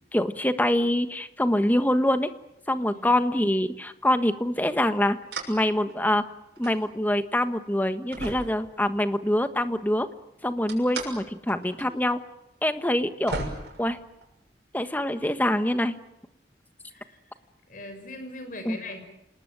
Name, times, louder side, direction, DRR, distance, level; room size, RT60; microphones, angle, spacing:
voice 1, 0.1-2.3 2.7-5.2 5.5-6.2 6.6-10.1 10.4-12.2 12.6-13.4 13.8-14.0 14.7-15.9 18.6-18.8, left 1 dB, 10° left, 10 dB, 1.3 m, -25 dB
voice 2, 2.7-3.2 16.9-17.3 17.7-19.0, left 2 dB, 50° left, 7 dB, 6.2 m, -41 dB
sound 1, 5.3-5.6 5.9-6.8 7.4-7.5 8.1-9.2 10.7-11.1 11.5-11.9 12.1-12.2 12.9-13.0 13.3-14.5, right 3 dB, 75° right, 6.6 m, -36 dB
28.0 x 20.0 x 9.2 m, 0.84 s
head